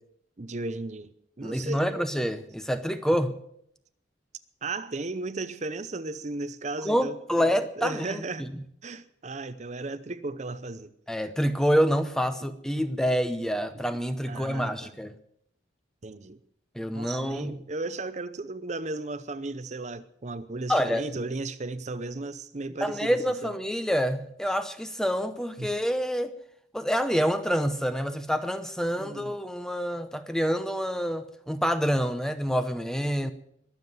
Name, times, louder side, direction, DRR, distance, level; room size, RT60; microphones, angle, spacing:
voice 1, 0.4-1.1 1.4-1.8 4.6-7.5 7.8-8.5 8.8-10.9 14.3-14.9 16.0-16.4 16.9-23.5 25.6-25.7 29.0-29.3, right 2 dB, 35° right, 0.6 m, -35 dB
voice 2, 1.4-3.3 6.8-8.5 11.1-15.2 16.8-17.5 20.7-21.0 22.8-26.3 26.7-33.3, equal, 5° left, 0.7 m, -27 dB
21.5 x 7.4 x 7.8 m
head